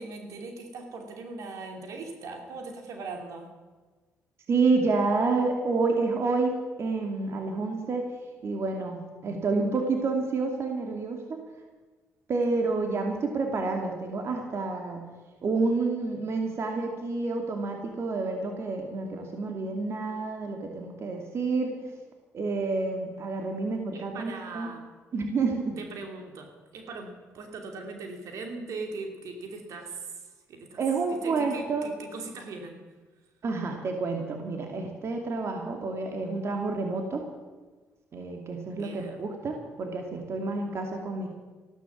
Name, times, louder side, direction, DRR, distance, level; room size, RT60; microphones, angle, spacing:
voice 1, 0.0-3.5 23.9-24.8 25.8-30.8 31.1-32.8 38.8-39.2, right 3 dB, 70° right, 3 dB, 2.8 m, -40 dB
voice 2, 4.5-6.5 6.8-8.0 8.4-11.4 12.3-15.1 15.4-21.8 22.3-24.7 25.1-25.8 30.8-31.9 33.4-37.2 38.1-41.3, right 3 dB, 50° right, 3 dB, 2.5 m, -29 dB
14.5 x 12.5 x 7.3 m, 1.3 s
cardioid pair, 85°, 6 cm